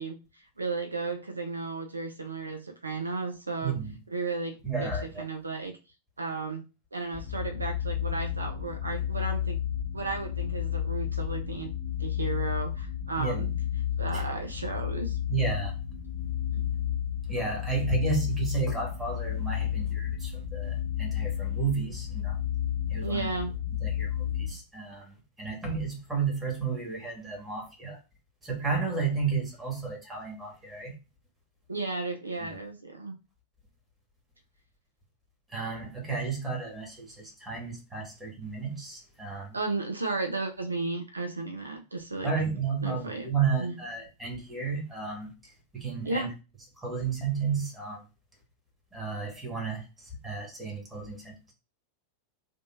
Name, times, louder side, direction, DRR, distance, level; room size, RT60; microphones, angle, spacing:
voice 1, 0.0-3.7 4.1-4.9 5.2-5.8 6.2-6.6 6.9-9.6 9.9-11.7 12.0-13.5 14.0-15.2 16.5-16.7 23.0-23.6 31.7-33.1 39.5-42.3 42.8-43.3 43.6-43.8 46.0-46.3, right 3 dB, 80° right, 0.4 m, -34 dB
voice 2, 3.6-3.9 4.6-5.2 13.2-13.5 14.1-14.2 15.3-15.7 17.3-22.4 22.9-23.3 23.8-28.0 28.4-30.9 32.4-32.6 35.5-39.5 42.2-46.3 46.8-48.0 48.9-51.5, right 5 dB, 10° right, 1.5 m, -32 dB
sound 1, 7.1-24.5, left 10 dB, 60° left, 0.5 m, -32 dB
3.5 x 2.5 x 2.5 m
figure-of-eight pair, 90°, 0 cm